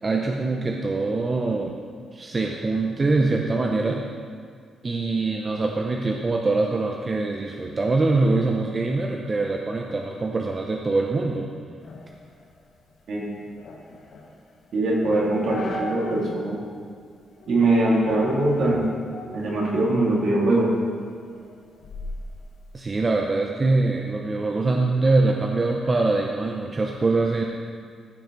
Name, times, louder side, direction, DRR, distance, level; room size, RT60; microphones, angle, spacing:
voice 1, 0.0-1.8 2.1-4.1 4.8-11.5 22.7-27.4, right 3 dB, 30° right, 1 dB, 0.7 m, -23 dB
sound 1, 11.8-16.3 16.7-16.8 17.4-17.8 18.1-20.2 20.6-23.0, left 1 dB, 60° left, 1.4 m, -39 dB
voice 2, 14.7-16.6 17.4-18.9 19.3-20.7, right 2 dB, 65° right, -5 dB, 2.9 m, -22 dB
14.5 x 6.1 x 4.0 m, 2.2 s
cardioid pair, 95°, 0 cm